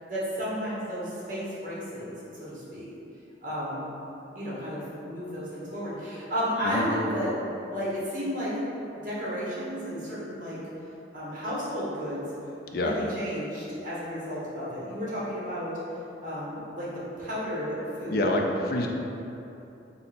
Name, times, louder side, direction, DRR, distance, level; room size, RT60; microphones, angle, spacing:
voice 1, 0.1-2.1 2.4-2.9 3.4-3.9 4.3-7.3 7.7-8.5 9.0-10.6 11.1-12.2 12.6-15.7 16.2-18.4, equal, 45° right, -8 dB, 1.2 m, -32 dB
voice 2, 18.1-18.9, left 1 dB, 55° left, 0 dB, 0.4 m, -26 dB
3.8 x 2.8 x 4.2 m, 2.9 s
head